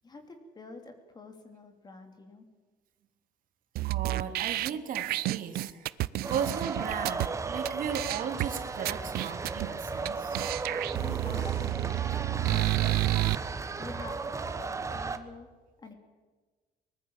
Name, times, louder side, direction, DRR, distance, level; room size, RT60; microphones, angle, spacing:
voice 1, 0.0-2.4 10.9-11.9 12.5-13.0 13.8-14.2 14.5-15.5 15.8-15.9, left 3 dB, 25° left, 6 dB, 3.0 m, -46 dB
voice 2, 3.8-5.9 6.3-10.4, right 8 dB, 60° right, 6 dB, 2.6 m, -36 dB
sound 1, 3.8-7.3 7.7-7.8 7.9-8.5 8.9-9.7 10.1-10.2 10.3-13.4, right 17 dB, 75° right, 0.6 m, -30 dB
sound 2, 6.2-15.2, right 4 dB, 20° right, 1.1 m, -35 dB
22.5 x 20.0 x 7.2 m, 1.3 s
cardioid pair, 160°, 16 cm